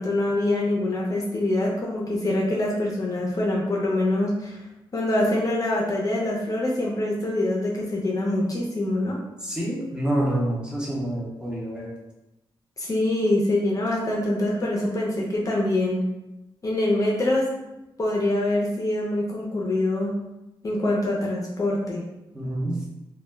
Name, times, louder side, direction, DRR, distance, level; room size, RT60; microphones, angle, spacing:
voice 1, 0.0-4.6 4.9-9.2 12.8-16.1 16.6-17.5 18.0-20.1 20.6-22.0, left 1 dB, 35° left, -2 dB, 0.5 m, -24 dB
voice 2, 9.4-11.9 22.3-22.8, right 1 dB, 10° right, -4 dB, 0.7 m, -27 dB
2.1 x 2.0 x 3.3 m, 0.95 s
cardioid pair, 95°, 9 cm